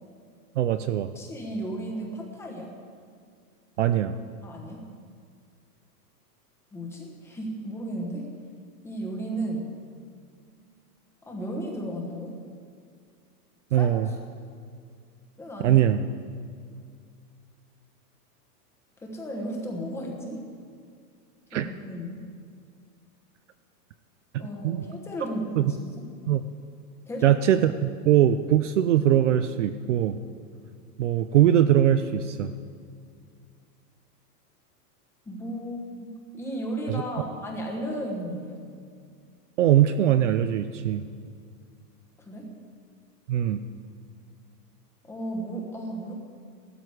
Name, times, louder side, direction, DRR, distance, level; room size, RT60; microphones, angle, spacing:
voice 1, 0.6-1.1 3.8-4.1 13.7-14.1 15.6-16.1 21.5-21.7 24.3-24.8 25.6-25.7 26.3-26.4 27.2-30.2 31.0-32.5 39.6-41.0 43.3-43.6, right 11 dB, 50° right, 10 dB, 0.5 m, -21 dB
voice 2, 1.1-2.8 4.4-4.8 6.7-8.4 8.8-9.7 11.2-12.4 13.7-14.2 15.4-15.8 19.0-20.4 21.5-22.2 24.4-26.1 27.1-27.4 35.2-38.6 42.2-42.5 45.1-46.1, right 1 dB, 5° left, 0 dB, 1.0 m, -34 dB
15.5 x 12.5 x 4.7 m, 2.2 s
supercardioid pair, 170°, 48 cm